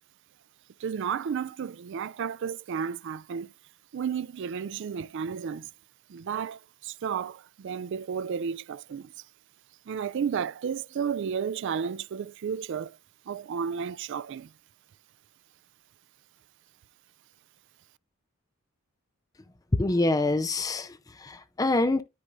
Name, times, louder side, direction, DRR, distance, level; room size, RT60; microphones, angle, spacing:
voice 1, 0.8-3.5 3.9-5.7 6.1-9.1 9.9-13.0 13.3-14.5, right 7 dB, 55° right, 0.3 m, -32 dB
voice 2, 19.7-20.9 21.2-22.0, left 2 dB, 15° left, 0.4 m, -25 dB
13.0 x 4.8 x 2.6 m
head